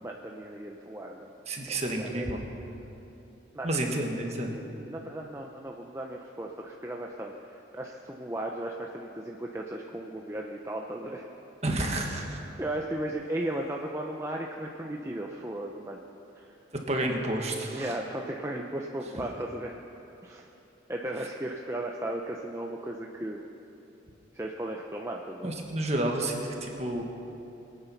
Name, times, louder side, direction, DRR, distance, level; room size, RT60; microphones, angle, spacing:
voice 1, 0.0-1.3 1.7-2.3 3.5-3.7 4.5-11.2 12.6-16.0 16.3-16.6 17.7-19.8 20.2-20.5 20.9-23.4 24.3-25.5, right 1 dB, 15° right, 0 dB, 0.6 m, -36 dB
voice 2, 1.5-2.4 3.6-4.5 11.6-12.4 16.7-17.9 25.4-27.0, right 1 dB, 35° right, 1 dB, 1.6 m, -30 dB
23.5 x 9.0 x 5.8 m, 2.9 s
head